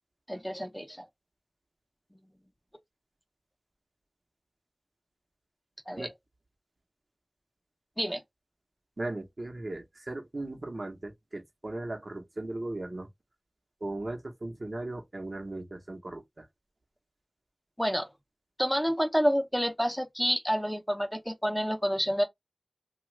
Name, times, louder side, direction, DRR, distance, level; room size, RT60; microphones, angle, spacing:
voice 1, 0.3-1.0 5.9-6.1 8.0-8.2 17.8-18.1 18.6-22.2, equal, 5° left, 0.7 m, -28 dB
voice 2, 9.0-13.1 13.8-16.5, right 2 dB, 65° right, 1.0 m, -37 dB
3.0 x 2.4 x 3.1 m
wide cardioid pair, 40°, 0 cm